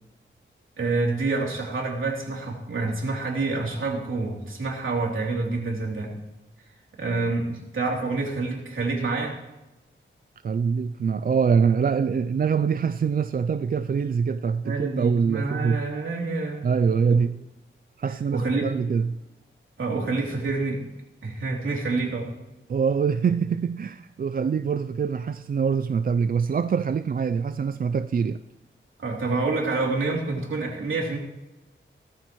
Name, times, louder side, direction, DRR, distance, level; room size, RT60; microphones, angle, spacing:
voice 1, 0.8-6.1 7.0-9.4 14.6-16.7 17.1-17.2 18.3-18.8 19.8-20.8 21.2-22.3 29.0-31.2, right 3 dB, 70° right, 3.2 m, -27 dB
voice 2, 10.4-15.8 16.6-17.4 18.0-19.2 22.7-28.4, right 6 dB, 45° right, 0.4 m, -24 dB
17.0 x 14.0 x 3.1 m
wide cardioid pair, 105°, 21 cm